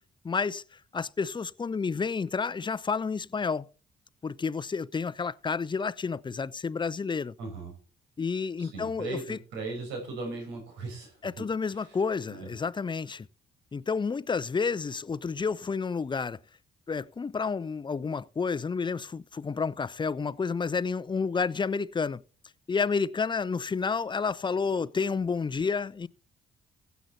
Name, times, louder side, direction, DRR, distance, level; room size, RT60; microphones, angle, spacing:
voice 1, 0.2-0.6 0.9-3.7 4.2-7.3 8.2-9.4 11.2-13.3 13.7-16.4 16.9-22.2 22.7-26.1, left 5 dB, 25° left, 0.6 m, -30 dB
voice 2, 7.4-7.7 8.6-12.0 12.3-12.5, right 3 dB, 85° right, 5.1 m, -38 dB
16.0 x 8.2 x 4.2 m
supercardioid pair, 60°, 18 cm